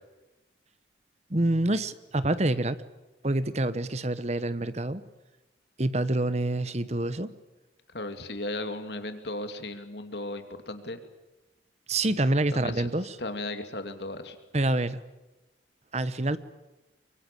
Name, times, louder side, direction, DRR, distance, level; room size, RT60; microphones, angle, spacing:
voice 1, 1.3-2.8 3.2-5.0 5.8-7.3 11.9-13.2 14.5-15.0 15.9-16.4, right 2 dB, 35° right, 14 dB, 1.1 m, -27 dB
voice 2, 7.9-11.0 12.5-12.9 13.2-14.4, left 2 dB, 65° left, 7 dB, 2.6 m, -36 dB
24.5 x 24.0 x 9.2 m, 1.0 s
head